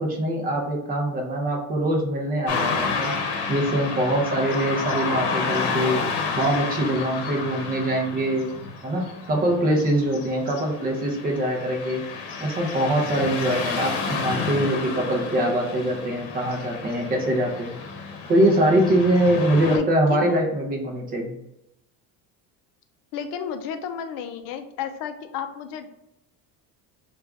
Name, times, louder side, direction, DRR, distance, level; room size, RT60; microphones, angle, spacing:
voice 1, 0.0-3.1 3.5-6.0 6.3-8.5 8.8-12.0 12.4-17.8 18.3-21.4, right 1 dB, 20° right, 1 dB, 0.5 m, -23 dB
Car passing by / Traffic noise roadway noise, 2.5-19.8, left 5 dB, 75° left, 0.9 m, -30 dB
voice 2, 19.7-20.4 23.1-25.9, left 7 dB, 60° left, 8 dB, 0.5 m, -32 dB
3.4 x 2.4 x 3.4 m, 0.85 s
cardioid pair, 170°, 41 cm